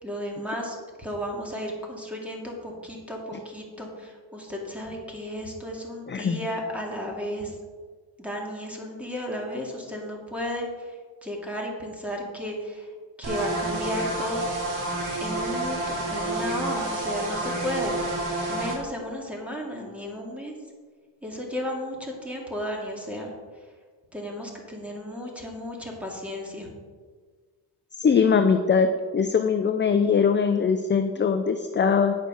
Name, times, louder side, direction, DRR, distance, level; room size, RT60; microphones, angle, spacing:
voice 1, 0.0-7.5 8.2-10.9 11.2-12.9 13.2-14.5 15.2-18.0 18.5-20.5 21.2-23.3 24.1-26.7, equal, 5° right, -1 dB, 2.4 m, -33 dB
voice 2, 6.1-6.5 28.0-28.9 29.1-32.1, left 6 dB, 25° left, 7 dB, 0.6 m, -21 dB
sound 1, 13.2-18.8, right 2 dB, 50° right, 3.3 m, -29 dB
9.4 x 6.7 x 6.3 m, 1.5 s
cardioid pair, 115°, 41 cm